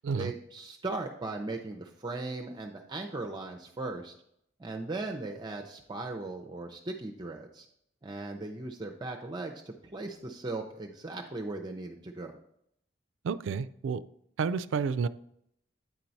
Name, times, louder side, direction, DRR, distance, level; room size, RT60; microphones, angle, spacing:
voice 1, 0.2-4.1 4.6-7.7 8.0-12.4, right 2 dB, 25° right, 2 dB, 0.5 m, -38 dB
voice 2, 13.2-14.0 14.4-15.1, right 5 dB, 80° right, 15 dB, 0.3 m, -30 dB
9.2 x 4.5 x 4.0 m, 0.73 s
head